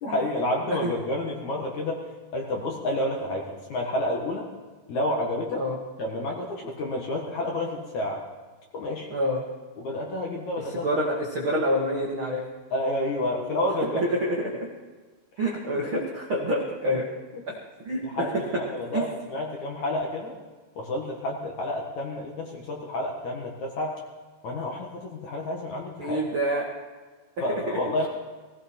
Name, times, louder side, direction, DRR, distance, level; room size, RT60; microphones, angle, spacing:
voice 1, 0.0-2.1 2.3-4.5 4.9-5.6 6.0-8.2 8.7-9.1 9.8-10.9 12.7-14.0 18.0-20.3 20.8-23.9 24.4-26.2 27.4-28.1, left 1 dB, 55° left, 0 dB, 2.4 m, -29 dB
voice 2, 9.1-9.4 10.8-12.4 13.9-14.5 15.4-17.0 17.5-17.6 17.8-18.3 18.9-19.0 26.0-26.6 27.7-27.8, equal, 50° right, -3 dB, 1.5 m, -27 dB
19.5 x 16.5 x 4.4 m, 1.3 s
omnidirectional pair, 5.1 m